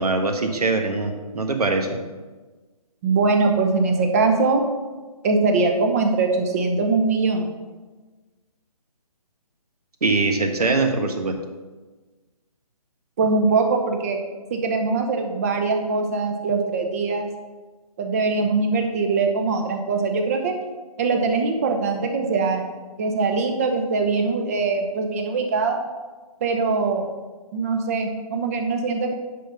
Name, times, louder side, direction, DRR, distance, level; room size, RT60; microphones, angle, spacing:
voice 1, 0.0-1.9 10.0-11.3, right 3 dB, 80° right, 5 dB, 1.4 m, -22 dB
voice 2, 3.0-4.6 5.2-7.5 13.2-14.2 14.5-17.3 18.0-20.5 21.0-22.6 23.0-25.8 26.4-27.0 27.5-29.1, right 4 dB, 25° right, 4 dB, 0.7 m, -22 dB
10.0 x 4.0 x 5.6 m, 1.3 s
hypercardioid pair, 160°, 19 cm